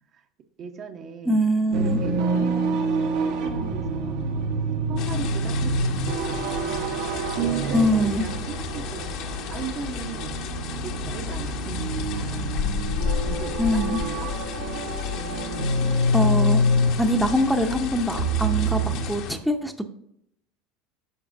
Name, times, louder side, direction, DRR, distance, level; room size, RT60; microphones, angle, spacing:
voice 1, 0.6-1.4 1.7-4.4 4.9-7.0 7.3-10.4 10.8-12.6 13.2-14.3, right 6 dB, 45° right, 6 dB, 0.8 m, -38 dB
voice 2, 1.3-2.0 7.7-8.2 13.6-14.0 16.1-16.6 17.0-19.9, equal, ahead, 6 dB, 0.6 m, -23 dB
sound 1, 1.7-19.1, right 1 dB, 70° right, 1.1 m, -27 dB
sound 2, 5.0-19.4, left 7 dB, 60° left, 0.9 m, -33 dB
10.0 x 6.1 x 2.6 m, 0.74 s
hypercardioid pair, 95°, 0 cm